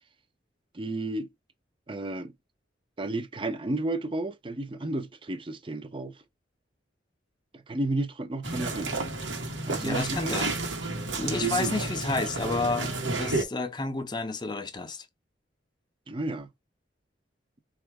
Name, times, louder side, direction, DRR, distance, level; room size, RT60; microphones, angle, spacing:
voice 1, 0.7-1.3 1.9-2.3 3.0-6.2 7.5-9.1 9.7-10.4 16.1-16.5, right 2 dB, 30° right, 0.5 m, -32 dB
sound 1, 8.4-13.4, right 3 dB, 90° right, 1.0 m, -31 dB
voice 2, 9.8-10.5 11.1-12.9 13.2-15.1, left 3 dB, 25° left, 0.6 m, -30 dB
4.3 x 2.4 x 4.5 m
head